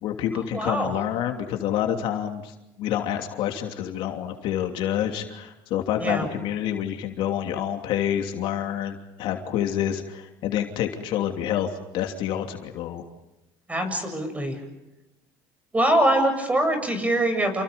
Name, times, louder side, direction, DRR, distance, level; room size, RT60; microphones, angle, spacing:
voice 1, 0.0-11.7 11.9-13.0, left 10 dB, 65° left, 4 dB, 3.0 m, -28 dB
voice 2, 0.5-0.9 6.0-6.3 13.7-14.6 15.7-17.6, right 1 dB, 15° right, 7 dB, 7.8 m, -23 dB
29.0 x 29.0 x 5.3 m, 0.95 s
supercardioid pair, 100°, 10 cm